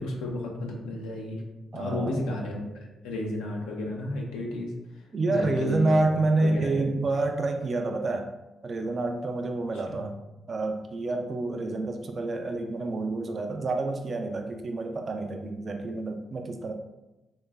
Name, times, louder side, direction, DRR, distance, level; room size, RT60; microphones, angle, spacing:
voice 1, 0.0-1.4 1.7-4.7 5.3-6.0 6.4-6.9 9.9-10.1, left 2 dB, 90° left, -1 dB, 0.4 m, -33 dB
voice 2, 1.7-2.2 5.1-8.3 8.6-10.2 10.5-16.7, right 2 dB, 50° right, 5 dB, 0.3 m, -28 dB
3.1 x 2.0 x 2.3 m, 0.99 s
supercardioid pair, 50°, 0 cm